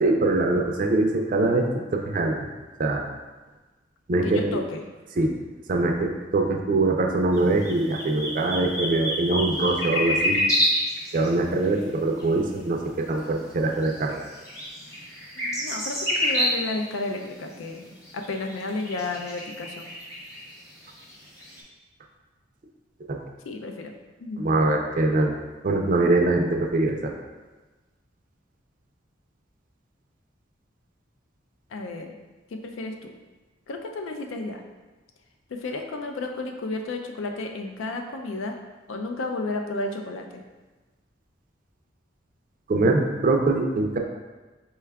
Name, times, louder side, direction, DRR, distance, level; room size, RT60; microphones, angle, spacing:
voice 1, 0.0-2.5 2.8-3.0 4.1-4.6 5.2-5.4 5.7-10.4 11.1-14.2 23.1-23.2 24.4-25.4 25.6-27.1 42.7-44.0, right 2 dB, 45° right, 2 dB, 0.4 m, -23 dB
voice 2, 4.2-4.8 15.3-19.9 23.5-23.9 24.2-24.5 31.7-32.1 32.5-33.1 33.7-34.6 35.5-38.6 38.9-40.4, left 2 dB, 90° left, 4 dB, 0.4 m, -32 dB
sound 1, 7.3-11.8 12.2-12.3 12.9-13.0 13.8-16.9 17.2-17.3 18.0-21.6, left 1 dB, 15° left, 0.7 m, -28 dB
4.4 x 2.3 x 3.4 m, 1.2 s
head